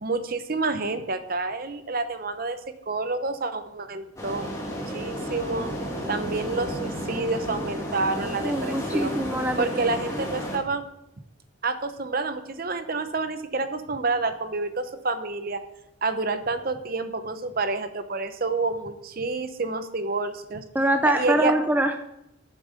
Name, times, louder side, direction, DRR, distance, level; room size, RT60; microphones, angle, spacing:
voice 1, 0.0-2.6 2.9-5.7 6.1-9.2 9.6-10.8 11.6-15.6 16.0-20.6 21.0-21.5, right 3 dB, 45° right, 9 dB, 0.8 m, -28 dB
sound 1, 4.2-10.6, equal, 15° left, 2.0 m, -32 dB
voice 2, 8.4-9.7 10.1-10.2 20.7-22.1, right 1 dB, 10° right, 5 dB, 0.5 m, -24 dB
8.6 x 7.5 x 6.6 m, 0.85 s
head